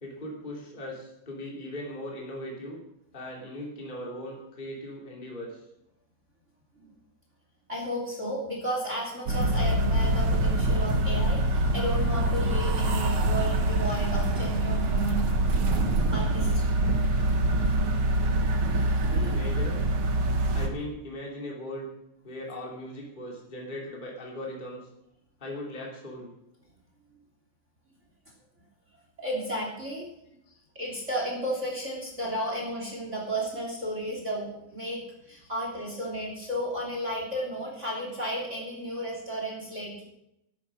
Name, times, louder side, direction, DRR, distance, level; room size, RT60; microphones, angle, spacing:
voice 1, 0.0-2.8 3.1-5.6 19.1-19.8 20.5-21.9 22.2-24.8 25.4-26.3 30.5-30.6, left 1 dB, 15° left, -2 dB, 3.0 m, -38 dB
voice 2, 7.7-15.3 16.1-16.9 29.2-30.1 30.7-40.0, equal, 25° right, -1 dB, 3.2 m, -33 dB
sound 1, 9.3-20.7, right 1 dB, 50° right, 2.0 m, -25 dB
12.5 x 12.0 x 6.2 m, 0.83 s
omnidirectional pair, 3.3 m